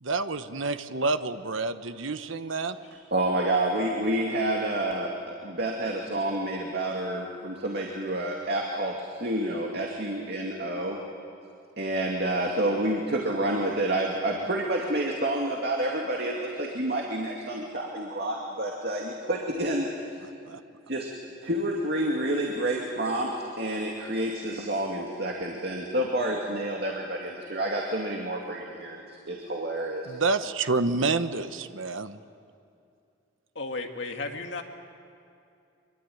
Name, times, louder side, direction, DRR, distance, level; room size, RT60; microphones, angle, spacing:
voice 1, 0.0-2.8 20.5-20.6 30.1-32.2, right 3 dB, 75° right, 10 dB, 1.1 m, -28 dB
voice 2, 3.1-5.1 5.4-11.0 11.8-20.2 20.9-21.1 21.4-30.2, right 1 dB, 55° right, 0 dB, 2.5 m, -29 dB
voice 3, 33.6-34.6, left 3 dB, 65° left, 3 dB, 2.3 m, -34 dB
25.0 x 23.5 x 9.4 m, 2.5 s
head